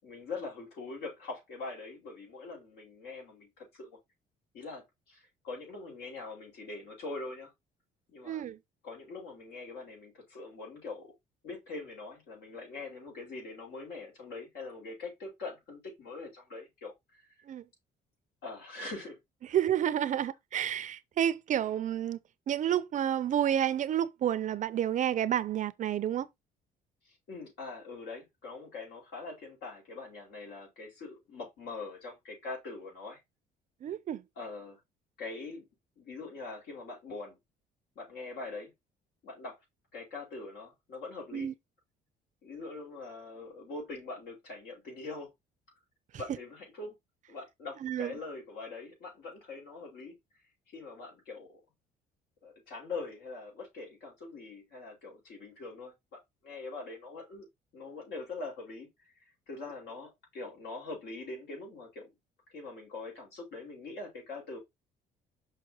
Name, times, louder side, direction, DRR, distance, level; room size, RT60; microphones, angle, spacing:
voice 1, 0.0-4.0 4.5-7.5 8.1-8.4 8.8-11.1 11.4-17.3 18.4-19.2 27.0-33.2 34.4-34.8 35.2-35.7 36.0-37.4 37.9-38.7 39.2-39.6 39.9-41.5 42.4-45.3 46.2-46.9 47.3-50.2 50.7-51.6 52.4-57.5 57.7-62.1 62.5-64.6, left 3 dB, 75° left, 4.8 m, -43 dB
voice 2, 8.2-8.6 17.5-17.6 19.5-22.2 22.5-26.3 33.8-34.2 41.3-41.5 47.8-48.1, right 10 dB, 45° right, 0.5 m, -30 dB
5.9 x 5.8 x 2.9 m
cardioid pair, 110°, 17 cm